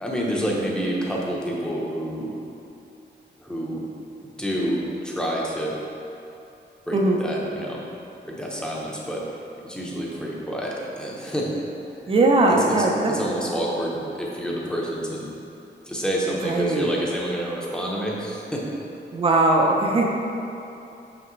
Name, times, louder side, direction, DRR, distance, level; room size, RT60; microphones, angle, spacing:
voice 1, 0.0-2.4 3.4-3.9 4.4-5.7 6.9-7.8 8.2-9.2 9.6-11.5 12.5-15.3 15.9-18.6, equal, 5° left, -4 dB, 0.8 m, -28 dB
voice 2, 12.1-13.1 16.4-16.9 19.1-20.1, right 2 dB, 30° right, 0 dB, 0.6 m, -19 dB
6.0 x 5.8 x 3.1 m, 2.8 s
wide cardioid pair, 155°, 19 cm